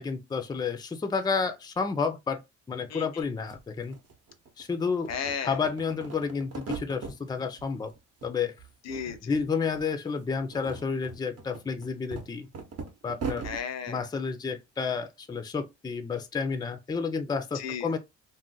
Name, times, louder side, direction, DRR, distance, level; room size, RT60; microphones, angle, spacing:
voice 1, 0.0-2.4 2.7-4.0 4.6-5.1 5.4-7.9 8.2-8.5 9.2-12.5 13.0-13.4 13.9-18.0, left 5 dB, 15° left, 0.4 m, -30 dB
sound 1, 3.2-3.3 3.5-4.6 5.0-7.2 7.6-8.3 8.6-9.5 9.7-9.9 10.4-13.6, right 4 dB, 50° right, 0.9 m, -39 dB
voice 2, 5.1-5.6 8.9-9.3 13.4-14.0 17.5-17.9, left 7 dB, 60° left, 0.6 m, -34 dB
2.5 x 2.1 x 3.8 m
cardioid pair, 90°, 30 cm